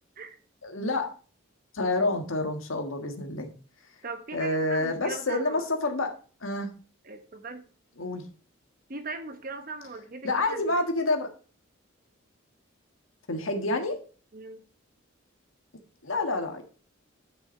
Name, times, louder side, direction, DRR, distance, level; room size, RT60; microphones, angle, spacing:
voice 1, 0.6-1.1 1.7-3.5 4.3-6.1 6.4-6.7 8.0-8.2 10.2-11.3 13.3-14.0 16.0-16.6, left 2 dB, 75° left, 4 dB, 1.6 m, -28 dB
voice 2, 4.0-5.7 7.0-7.6 8.9-10.8 14.3-14.6, right 3 dB, 45° right, 8 dB, 1.1 m, -39 dB
9.9 x 5.8 x 4.4 m, 0.38 s
head